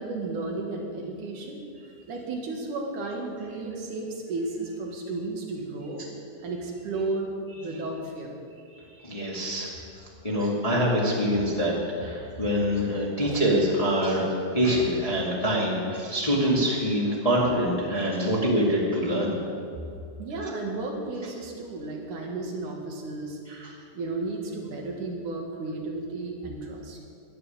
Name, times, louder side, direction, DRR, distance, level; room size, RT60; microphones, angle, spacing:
voice 1, 0.0-1.6 2.1-6.1 6.4-8.3 13.2-13.4 20.2-23.4 23.9-27.1, right 2 dB, 55° right, 0 dB, 2.8 m, -33 dB
voice 2, 8.7-11.7 12.0-19.3 23.5-23.7, equal, 55° left, -5 dB, 0.4 m, -25 dB
11.5 x 10.5 x 8.7 m, 2.4 s
omnidirectional pair, 4.8 m